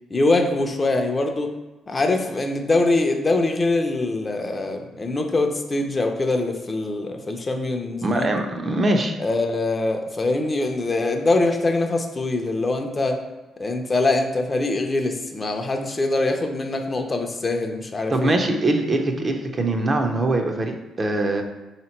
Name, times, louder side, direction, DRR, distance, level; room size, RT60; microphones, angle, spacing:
voice 1, 0.1-1.5 1.9-8.3 9.2-13.2 13.6-18.4, left 2 dB, 30° left, 4 dB, 0.5 m, -23 dB
voice 2, 8.0-9.1 18.1-21.4, right 2 dB, 35° right, 4 dB, 0.5 m, -22 dB
3.6 x 2.9 x 4.3 m, 1.1 s
cardioid pair, 90°, 0 cm